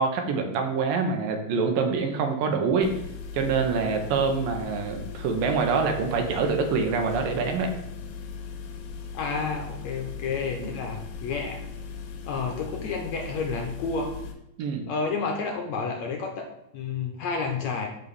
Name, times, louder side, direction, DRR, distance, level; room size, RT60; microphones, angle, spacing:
voice 1, 0.0-2.9 3.3-7.7 10.6-10.7 14.6-14.9, right 5 dB, 80° right, 4 dB, 2.8 m, -25 dB
sound 1, 2.8-14.3, left 5 dB, 85° left, 2.9 m, -38 dB
voice 2, 9.1-11.6 12.3-14.1 14.9-16.5 16.7-17.9, left 4 dB, 70° left, 3 dB, 1.9 m, -30 dB
8.8 x 4.0 x 7.0 m, 0.80 s
omnidirectional pair, 4.0 m